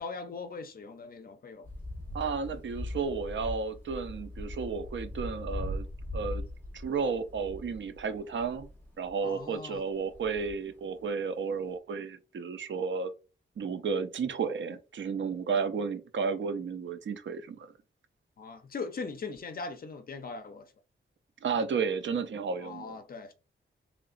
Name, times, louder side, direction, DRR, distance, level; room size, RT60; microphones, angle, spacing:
voice 1, 0.0-1.7 9.2-9.8 18.4-20.7 22.6-23.3, left 4 dB, 45° left, 0.5 m, -40 dB
sound 1, 1.6-9.4 9.7-10.5 11.3-11.4 11.6-11.7, left 1 dB, 10° left, 0.9 m, -40 dB
voice 2, 2.1-5.9 6.1-6.4 6.7-8.7 9.0-13.1 13.6-17.7 21.4-23.0, right 5 dB, 70° right, 0.5 m, -32 dB
3.8 x 3.1 x 2.4 m
wide cardioid pair, 170°, 20 cm